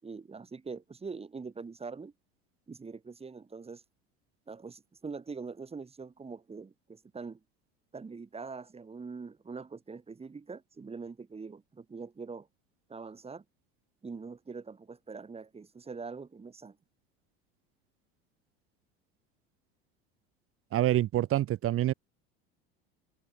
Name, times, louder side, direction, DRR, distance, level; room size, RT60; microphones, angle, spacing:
voice 1, 0.0-2.1 2.7-3.8 4.5-7.4 7.9-12.5 12.9-13.4 14.0-16.8, right 4 dB, 20° right, 7.3 m, -43 dB
voice 2, 20.7-21.9, right 13 dB, 45° right, 3.0 m, -26 dB
hypercardioid pair, 95°, 29 cm